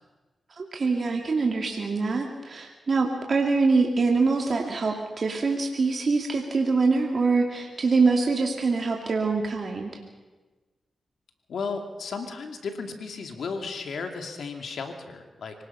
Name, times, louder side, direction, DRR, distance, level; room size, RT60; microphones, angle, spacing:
voice 1, 0.6-9.9, right 4 dB, 55° right, 1 dB, 2.4 m, -24 dB
voice 2, 11.5-15.5, left 4 dB, 75° left, 5 dB, 2.4 m, -34 dB
24.5 x 18.5 x 5.7 m, 1.2 s
supercardioid pair, 45°, 0 cm